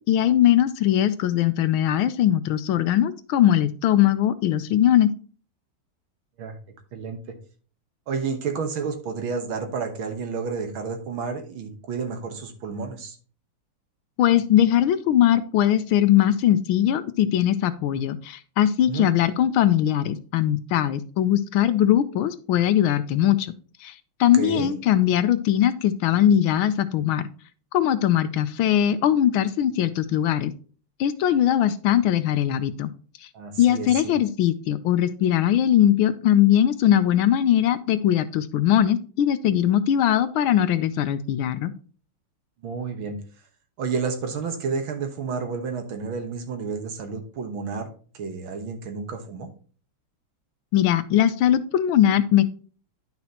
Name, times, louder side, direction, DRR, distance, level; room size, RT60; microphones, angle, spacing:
voice 1, 0.1-5.1 14.2-23.5 23.8-23.9 24.2-27.2 27.7-30.5 31.0-32.9 33.6-41.7 50.7-52.4, left 11 dB, 75° left, 13 dB, 1.4 m, -20 dB
voice 2, 8.1-13.2 18.9-19.1 24.3-24.7 33.3-33.9 42.6-43.2 43.8-47.9 48.2-49.5, right 5 dB, 65° right, 6 dB, 2.0 m, -30 dB
10.5 x 6.0 x 2.8 m, 0.40 s
omnidirectional pair, 2.4 m